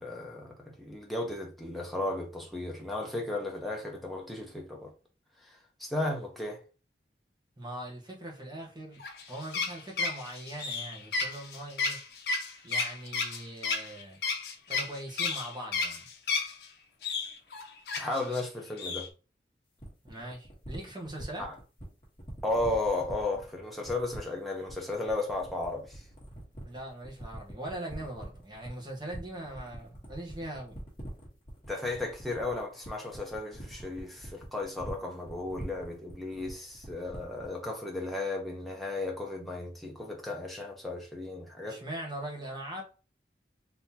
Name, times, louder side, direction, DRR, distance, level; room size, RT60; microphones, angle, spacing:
voice 1, 0.0-4.9 5.4-6.6 18.0-19.1 21.4-21.5 22.4-26.1 31.7-41.8, left 2 dB, ahead, 0.8 m, -34 dB
voice 2, 7.6-9.0 9.3-12.0 12.6-14.2 14.7-16.1 20.0-21.4 26.6-30.8 41.6-42.8, right 1 dB, 25° right, 1.1 m, -41 dB
sound 1, 9.0-16.7 17.0-18.4 18.8-19.1, left 4 dB, 60° left, 0.7 m, -32 dB
sound 2, 19.8-37.6, right 1 dB, 25° left, 1.3 m, -44 dB
3.7 x 2.8 x 2.8 m
head